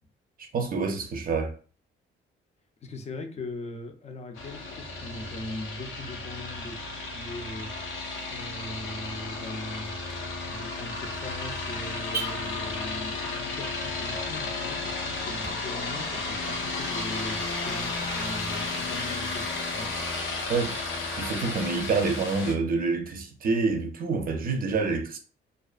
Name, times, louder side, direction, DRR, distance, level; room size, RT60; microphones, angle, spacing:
voice 1, 0.4-1.5 20.5-20.8 21.2-25.2, right 4 dB, 45° right, 0.6 m, -27 dB
voice 2, 2.8-8.0 8.3-10.0 10.4-19.9, left 1 dB, 35° left, 0.5 m, -40 dB
sound 1, 4.3-22.5, left 3 dB, 80° left, 0.6 m, -33 dB
Car / Alarm, 6.3-15.5, right 4 dB, 15° right, 0.7 m, -45 dB
2.4 x 2.3 x 2.4 m
cardioid pair, 90°, 20 cm